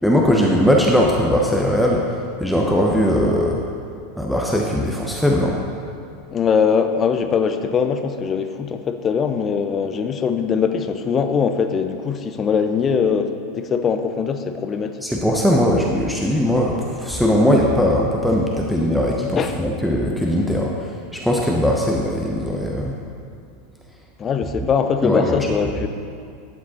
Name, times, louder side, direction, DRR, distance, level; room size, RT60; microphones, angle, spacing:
voice 1, 0.0-2.0 2.4-3.6 4.2-5.6 15.0-22.9 25.0-25.4, equal, ahead, -2 dB, 1.0 m, -19 dB
voice 2, 6.3-15.0 19.3-19.6 24.2-25.9, left 6 dB, 30° left, 8 dB, 0.7 m, -21 dB
12.0 x 8.5 x 4.3 m, 2.3 s
figure-of-eight pair, 85°, 0 cm